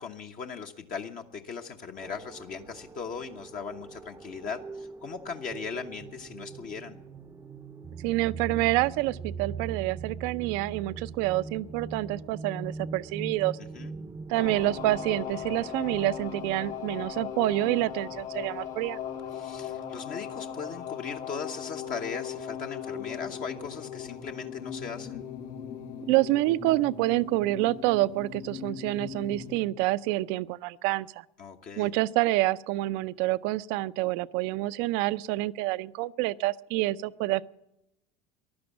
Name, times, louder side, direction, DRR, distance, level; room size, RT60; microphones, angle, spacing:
voice 1, 0.0-7.0 13.7-13.9 19.3-25.2 31.4-31.9, left 5 dB, 45° left, 1.1 m, -38 dB
sound 1, 2.0-19.1, right 5 dB, 15° right, 0.7 m, -42 dB
voice 2, 8.0-13.6 14.3-19.0 26.1-31.1 31.8-37.4, right 17 dB, 60° right, 0.6 m, -27 dB
sound 2, 14.3-29.6, left 9 dB, 65° left, 2.4 m, -38 dB
15.0 x 11.5 x 7.2 m
hypercardioid pair, 85°, 20 cm